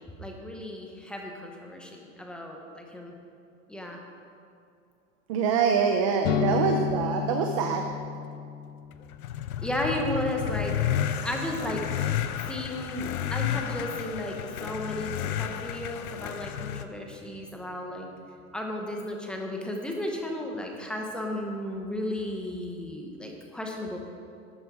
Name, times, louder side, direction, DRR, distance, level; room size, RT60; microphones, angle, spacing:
voice 1, 0.2-3.1 3.7-4.0 9.6-10.9 11.2-18.1 18.5-24.0, left 1 dB, ahead, 1 dB, 0.8 m, -34 dB
voice 2, 5.3-7.8, right 6 dB, 25° right, 4 dB, 0.4 m, -25 dB
sound 1, 6.2-13.8, left 7 dB, 45° left, 0.7 m, -34 dB
sound 2, 9.0-16.8, left 10 dB, 80° left, 0.8 m, -31 dB
12.5 x 9.5 x 4.8 m, 2.5 s
supercardioid pair, 155°, 42 cm